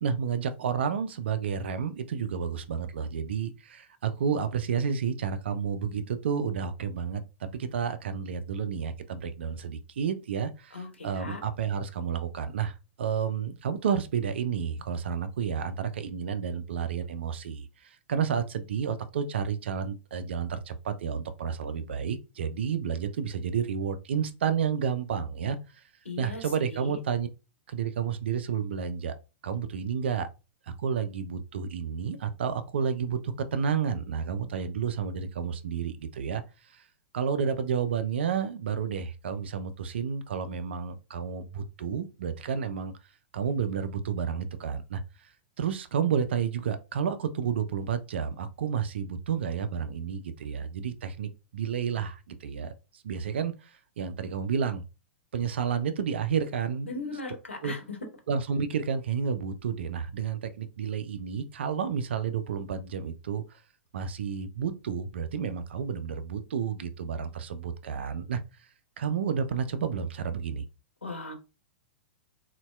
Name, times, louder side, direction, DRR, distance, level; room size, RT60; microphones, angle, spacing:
voice 1, 0.0-25.6 26.2-27.3 27.7-29.2 29.4-30.3 30.8-36.4 36.7-36.8 37.1-42.9 43.3-45.0 45.6-52.7 53.0-54.8 55.3-56.9 57.6-57.7 58.3-63.6 63.9-68.4 69.0-70.6, right 7 dB, 65° right, 0.4 m, -31 dB
voice 2, 10.7-11.4 26.0-27.0 56.9-58.0 71.0-71.3, left 3 dB, 80° left, 0.9 m, -38 dB
3.9 x 2.1 x 2.2 m
figure-of-eight pair, 100°, 7 cm